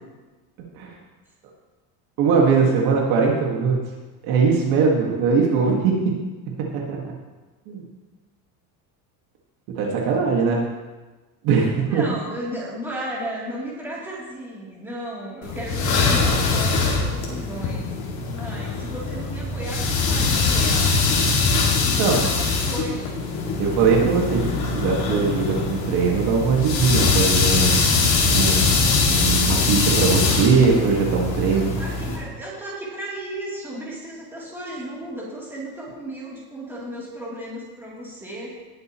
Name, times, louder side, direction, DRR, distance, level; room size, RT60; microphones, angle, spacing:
voice 1, 2.2-3.8 4.2-6.2 6.5-7.2 7.7-7.8 9.7-10.6 11.4-12.0 22.0-22.2 23.6-27.8 28.3-28.8 29.1-31.7, right 5 dB, 55° right, -1 dB, 1.9 m, -21 dB
voice 2, 11.8-17.9 18.3-20.9 21.8-23.2 31.4-38.6, right 1 dB, 5° right, -7 dB, 3.1 m, -35 dB
sound 1, 15.4-32.2, left 4 dB, 40° left, 2.3 m, -22 dB
18.5 x 7.8 x 3.1 m, 1.2 s
cardioid pair, 160°, 43 cm